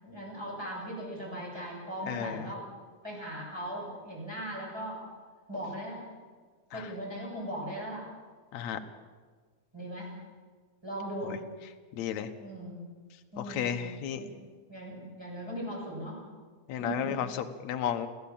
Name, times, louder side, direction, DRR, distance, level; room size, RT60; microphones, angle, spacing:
voice 1, 0.0-2.6 3.0-5.0 5.5-6.0 6.7-8.1 9.7-10.1 10.8-11.3 12.4-12.9 13.3-13.8 14.2-14.4 14.7-16.2 16.7-17.2, equal, 10° right, -3 dB, 7.2 m, -38 dB
voice 2, 2.1-2.4 6.7-6.9 8.5-8.8 12.0-12.3 13.4-14.3 16.7-17.3 17.6-18.1, left 9 dB, 70° left, 7 dB, 2.4 m, -33 dB
29.5 x 13.5 x 7.3 m, 1.5 s
omnidirectional pair, 3.4 m